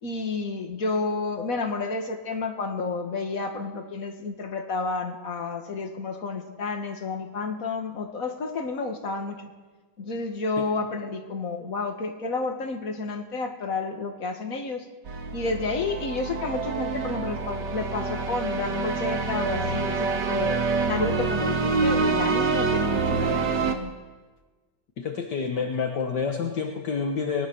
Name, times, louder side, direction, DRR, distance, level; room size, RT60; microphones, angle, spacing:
voice 1, 0.0-9.5 10.0-14.9 15.3-23.9, left 3 dB, 45° left, 4 dB, 2.3 m, -30 dB
sound 1, 15.1-23.7, right 4 dB, 65° right, 2.1 m, -26 dB
voice 2, 25.0-27.5, left 5 dB, 65° left, 3 dB, 1.9 m, -28 dB
22.5 x 19.5 x 6.5 m, 1.3 s
omnidirectional pair, 2.0 m